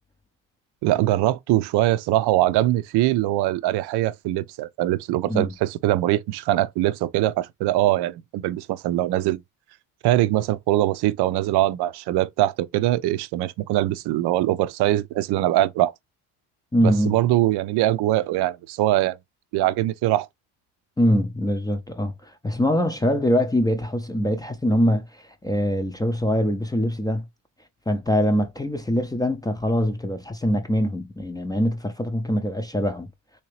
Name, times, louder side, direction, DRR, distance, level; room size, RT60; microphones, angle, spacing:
voice 1, 0.8-9.4 10.0-15.9 16.8-19.2 19.5-20.3, right 14 dB, 65° right, 0.6 m, -22 dB
voice 2, 16.7-17.2 21.0-27.3 27.9-33.1, equal, 10° left, 0.5 m, -23 dB
3.3 x 2.9 x 3.1 m
supercardioid pair, 100°, 44 cm